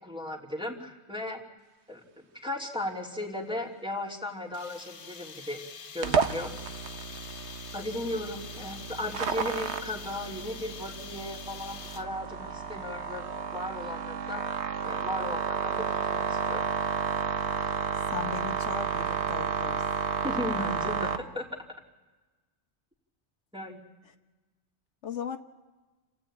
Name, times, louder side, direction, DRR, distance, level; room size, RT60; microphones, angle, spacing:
voice 1, 0.0-1.4 1.9-2.0 2.4-5.6 5.9-6.5 7.7-14.4 14.8-16.7 20.2-21.5 23.5-23.8, left 1 dB, 5° right, -3 dB, 3.1 m, -36 dB
sound 1, 4.5-12.3, left 6 dB, 60° left, 1.3 m, -45 dB
sound 2, 6.0-21.2, right 6 dB, 75° right, 1.3 m, -32 dB
voice 2, 18.1-19.9 24.0-24.1 25.0-25.4, left 7 dB, 80° left, 7 dB, 1.3 m, -37 dB
29.0 x 17.0 x 8.8 m, 1.2 s
omnidirectional pair, 1.2 m